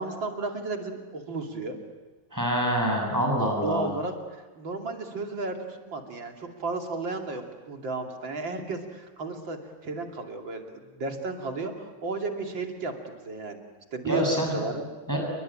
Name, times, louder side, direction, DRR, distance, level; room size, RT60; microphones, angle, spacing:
voice 1, 0.0-1.8 3.6-4.1 4.6-13.6 13.9-14.9, right 3 dB, 70° right, 3 dB, 3.4 m, -33 dB
voice 2, 2.3-3.9 14.0-14.6 15.1-15.2, equal, 10° right, 0 dB, 7.2 m, -26 dB
29.5 x 22.0 x 8.9 m, 1.2 s
omnidirectional pair, 2.2 m